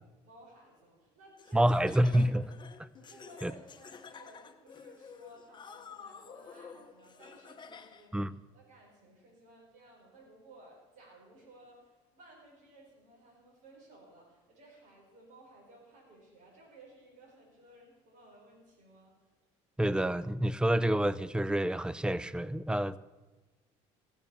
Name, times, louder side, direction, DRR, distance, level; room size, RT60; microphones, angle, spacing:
voice 1, 0.2-1.8 2.9-19.3, right 1 dB, 60° right, 4.5 m, -57 dB
Laughter, 1.4-8.2, left 6 dB, 30° left, 0.9 m, -51 dB
voice 2, 1.5-2.5 3.4-3.5 8.1-8.3 19.8-23.0, right 1 dB, 5° right, 0.4 m, -28 dB
16.0 x 7.1 x 6.9 m
supercardioid pair, 90°, 14 cm